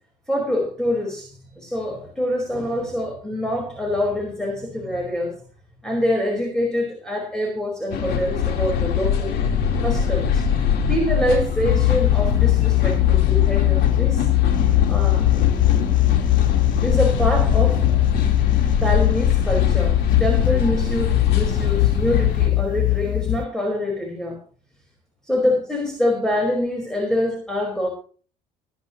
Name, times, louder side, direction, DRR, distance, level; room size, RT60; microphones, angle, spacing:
voice 1, 0.3-1.3 1.6-5.3 5.8-9.4 9.8-10.4 10.9-14.3 14.9-15.3 16.8-18.0 18.7-24.4 25.3-27.9, left 1 dB, 5° left, 1 dB, 4.8 m, -25 dB
sound 1, 7.9-22.5, left 7 dB, 80° left, 3.7 m, -22 dB
sound 2, 11.6-23.5, left 19 dB, 50° left, 0.5 m, -20 dB
21.5 x 10.5 x 3.0 m, 0.40 s
cardioid pair, 110°, 17 cm